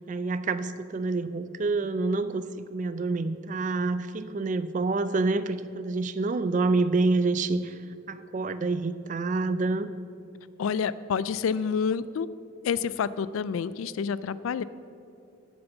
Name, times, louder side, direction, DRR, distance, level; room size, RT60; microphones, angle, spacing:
voice 1, 0.1-7.8 8.1-9.9, right 3 dB, 35° right, 13 dB, 0.3 m, -27 dB
voice 2, 10.6-12.3 12.6-14.6, left 6 dB, 80° left, 17 dB, 0.3 m, -28 dB
9.0 x 6.9 x 7.1 m, 2.5 s
head